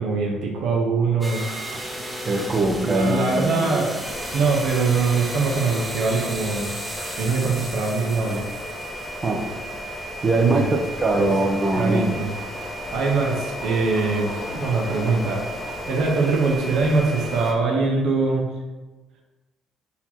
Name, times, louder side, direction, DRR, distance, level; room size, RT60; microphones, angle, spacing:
voice 1, 0.0-1.4 2.8-8.4 10.4-10.7 11.2-11.3 11.8-12.3 12.9-15.4 15.9-18.5, right 4 dB, 75° right, 0 dB, 0.8 m, -23 dB
sound 1, 1.2-9.5, right 1 dB, 10° right, 0.8 m, -35 dB
voice 2, 2.3-3.8 9.2-9.4 10.2-12.1, right 2 dB, 35° right, 3 dB, 0.7 m, -22 dB
sound 2, 4.0-17.5, right 1 dB, 20° left, 1.2 m, -34 dB
sound 3, 11.1-16.5, left 4 dB, 55° left, 0.6 m, -38 dB
4.2 x 2.9 x 4.2 m, 1.2 s
cardioid pair, 85°, 0 cm